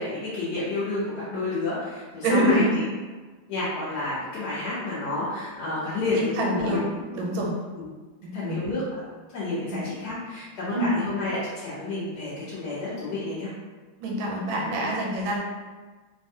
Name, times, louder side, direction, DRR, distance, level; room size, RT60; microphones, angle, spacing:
voice 1, 0.0-2.8 3.5-6.8 7.7-7.9 8.3-9.0 9.3-13.5, left 2 dB, 65° left, -9 dB, 1.1 m, -30 dB
voice 2, 2.2-2.7 6.1-7.5 8.2-8.7 9.7-9.8 10.7-10.9 14.0-15.4, right 1 dB, 80° right, -1 dB, 1.4 m, -26 dB
3.4 x 2.2 x 2.6 m, 1.3 s
omnidirectional pair, 2.2 m